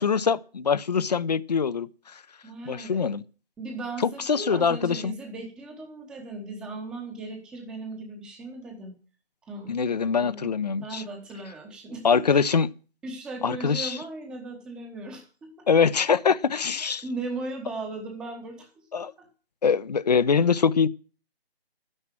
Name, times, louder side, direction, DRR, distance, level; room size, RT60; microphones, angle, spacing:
voice 1, 0.0-1.9 2.7-3.2 4.3-5.1 9.7-11.0 12.0-12.7 13.4-14.0 15.7-17.0 18.9-19.1 19.6-20.9, left 6 dB, 40° left, 0.7 m, -23 dB
voice 2, 2.4-3.1 3.6-8.9 9.4-9.8 10.1-10.5 10.8-12.5 13.0-15.7 16.8-19.1, right 2 dB, 5° right, 1.0 m, -37 dB
12.0 x 9.8 x 7.5 m
figure-of-eight pair, 160°, 31 cm